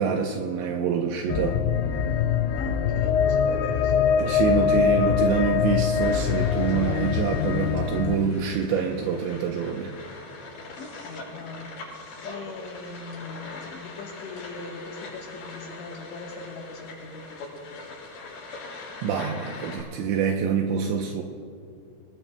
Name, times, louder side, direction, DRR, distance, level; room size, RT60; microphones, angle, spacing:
voice 1, 0.0-1.6 4.2-9.9 19.0-21.2, right 6 dB, 80° right, 2 dB, 2.7 m, -26 dB
sound 1, 1.3-8.1, left 7 dB, 90° left, 3.4 m, -23 dB
voice 2, 2.6-4.1 10.8-11.8 12.2-17.8, left 3 dB, 70° left, -1 dB, 3.3 m, -41 dB
sound 2, 6.0-19.8, left 3 dB, 50° left, 6.8 m, -42 dB
26.0 x 19.5 x 2.2 m, 2.3 s
omnidirectional pair, 5.7 m